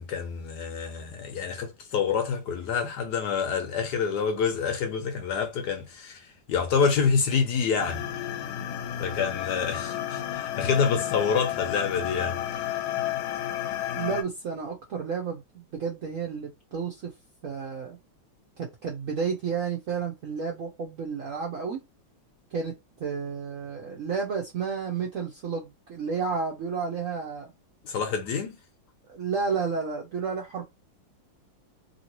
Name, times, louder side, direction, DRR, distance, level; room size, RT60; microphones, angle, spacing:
voice 1, 0.0-8.0 9.0-12.6 27.8-28.6, left 6 dB, 70° left, 1.1 m, -27 dB
sound 1, 7.8-14.2, left 11 dB, 85° left, 1.4 m, -32 dB
voice 2, 13.9-17.1 17.4-18.0 18.6-21.8 22.5-22.7 23.0-27.5 29.1-30.6, right 5 dB, 70° right, 0.7 m, -31 dB
3.0 x 2.7 x 2.9 m
omnidirectional pair, 2.2 m